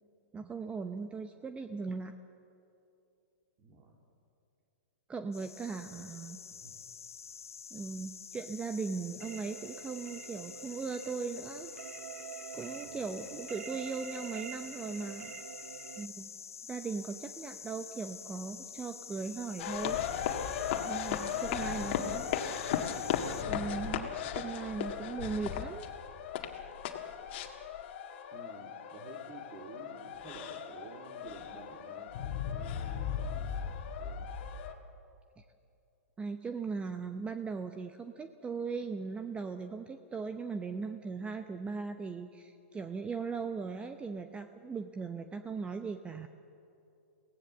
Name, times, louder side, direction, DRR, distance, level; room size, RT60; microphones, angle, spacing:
voice 1, 0.3-2.1 5.1-6.4 7.7-11.7 12.5-15.3 16.0-16.3 16.7-20.0 20.8-22.3 23.5-25.9 35.4-35.5 36.2-46.3, right 5 dB, 15° right, 8 dB, 0.8 m, -38 dB
voice 2, 3.6-4.0 5.9-6.1 6.6-6.8 12.8-13.5 21.3-22.3 28.3-32.1 32.5-34.3, right 4 dB, 35° right, 0 dB, 2.7 m, -51 dB
sound 1, 5.3-23.4, left 7 dB, 85° left, 0.8 m, -48 dB
sound 2, 9.2-16.1, right 8 dB, 70° right, 0.8 m, -46 dB
sound 3, 19.6-34.7, left 8 dB, 50° left, 1.9 m, -36 dB
23.5 x 17.5 x 7.2 m, 2.6 s
hypercardioid pair, 115°, 7 cm